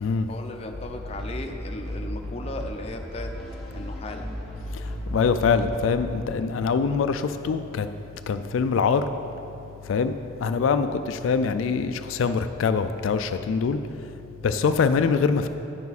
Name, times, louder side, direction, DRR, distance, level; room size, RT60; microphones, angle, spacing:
voice 1, 0.3-3.3 3.7-4.3, left 2 dB, 30° left, 3 dB, 0.6 m, -36 dB
sound 1, 0.7-6.3, equal, ahead, 1.6 m, -35 dB
voice 2, 4.7-7.9 8.3-9.1 9.8-10.1 10.4-14.1 14.4-15.5, left 5 dB, 85° left, 10 dB, 0.3 m, -24 dB
10.0 x 7.0 x 4.1 m, 2.8 s
head